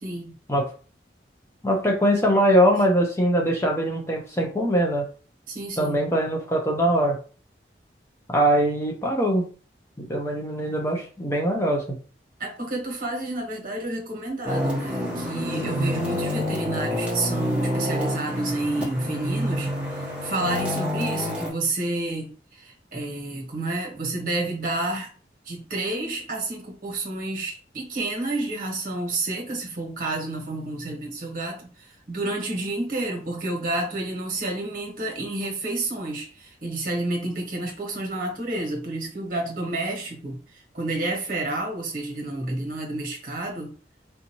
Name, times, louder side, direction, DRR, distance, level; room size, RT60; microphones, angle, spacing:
voice 1, 0.0-0.3 5.5-6.0 12.4-25.1 25.4-43.7, right 2 dB, 50° right, 0 dB, 1.2 m, -30 dB
voice 2, 1.6-5.1 5.8-7.2 8.3-9.5 10.0-12.0, equal, 15° left, 0 dB, 0.5 m, -22 dB
sound 1, 14.4-21.5, equal, 5° right, 1.0 m, -28 dB
3.5 x 2.7 x 2.9 m, 0.38 s
head